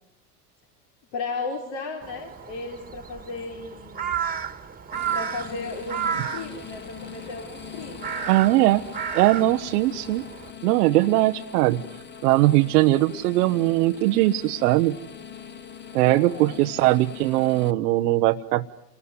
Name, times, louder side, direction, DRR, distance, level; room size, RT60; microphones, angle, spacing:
voice 1, 1.1-4.3 5.1-8.1 16.0-16.6, left 3 dB, 55° left, 2 dB, 4.0 m, -35 dB
Crow, 2.0-10.5, right 7 dB, 20° right, 1.9 m, -33 dB
sound 1, 4.9-17.7, left 8 dB, 20° left, 1.2 m, -41 dB
voice 2, 8.3-8.8 9.1-10.2 10.6-11.8 12.2-15.0 15.9-18.7, right 17 dB, 70° right, 6 dB, 0.9 m, -20 dB
28.0 x 20.5 x 9.6 m, 0.85 s
hypercardioid pair, 95°, 48 cm